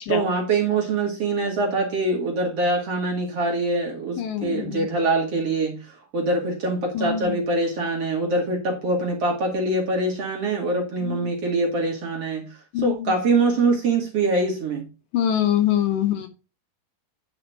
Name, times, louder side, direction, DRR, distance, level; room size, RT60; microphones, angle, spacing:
voice 1, 0.1-12.4 12.8-14.8, right 2 dB, 50° right, 0 dB, 2.2 m, -24 dB
voice 2, 4.2-4.9 7.0-7.3 11.0-11.3 12.7-13.1 15.1-16.3, left 10 dB, 75° left, 7 dB, 2.3 m, -24 dB
9.8 x 5.0 x 4.4 m, 0.30 s
omnidirectional pair, 4.4 m